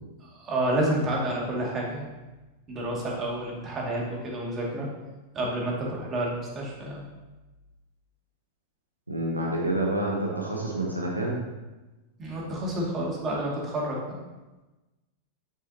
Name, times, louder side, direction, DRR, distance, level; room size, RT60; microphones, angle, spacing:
voice 1, 0.2-2.1 2.7-4.9 5.3-7.0 12.2-14.2, right 1 dB, 25° right, -3 dB, 2.2 m, -29 dB
voice 2, 9.1-11.4, right 1 dB, 85° right, -2 dB, 1.2 m, -28 dB
8.9 x 6.9 x 2.8 m, 1.1 s
figure-of-eight pair, 90°, 0 cm